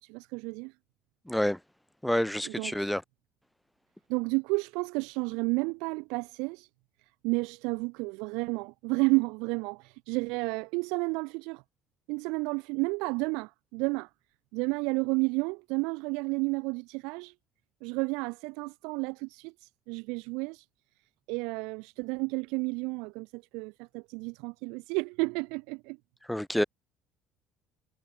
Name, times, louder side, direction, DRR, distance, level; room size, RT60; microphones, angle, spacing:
voice 1, 0.0-0.7 2.4-2.9 4.1-6.7 7.2-11.6 12.1-14.1 14.5-17.3 17.8-20.7 21.3-26.0, right 29 dB, 80° right, 3.5 m, -31 dB
voice 2, 1.3-1.6 2.0-3.0 26.3-26.6, left 1 dB, 5° left, 0.6 m, -28 dB
hypercardioid pair, 70°, 0 cm